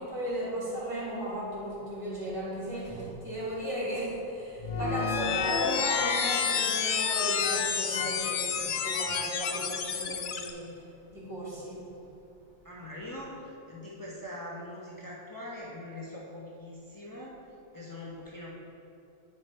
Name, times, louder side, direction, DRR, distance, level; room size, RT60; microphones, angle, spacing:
voice 1, 0.0-10.7 11.1-11.9, right 1 dB, 70° right, -8 dB, 2.5 m, -36 dB
sound 1, 4.6-10.5, left 6 dB, 60° left, 0.5 m, -29 dB
voice 2, 12.6-17.4 17.7-18.5, left 1 dB, 20° left, -5 dB, 0.9 m, -42 dB
8.8 x 5.0 x 4.4 m, 2.7 s
omnidirectional pair, 1.3 m